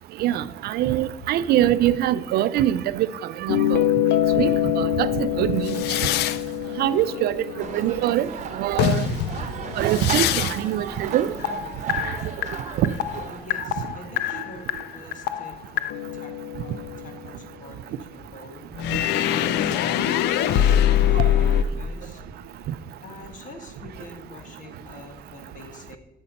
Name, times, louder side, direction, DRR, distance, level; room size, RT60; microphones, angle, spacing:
voice 1, 0.2-3.1 3.4-3.8 4.4-4.5 4.8-5.8 6.8-7.4 7.7-8.3 8.6-9.1 9.8-11.3 11.9-12.0 12.8-12.9 21.2-21.3, right 12 dB, 70° right, 15 dB, 0.5 m, -23 dB
sound 1, 3.5-8.4 8.8-10.7 11.0-17.2 18.8-21.6, left 11 dB, 80° left, 0.5 m, -24 dB
sound 2, 7.6-13.4, right 6 dB, 45° right, 1.0 m, -36 dB
voice 2, 13.3-18.7 19.3-22.2 23.0-26.0, left 2 dB, 50° left, 5 dB, 1.6 m, -44 dB
8.4 x 6.8 x 5.3 m, 1.1 s
cardioid pair, 110°, 17 cm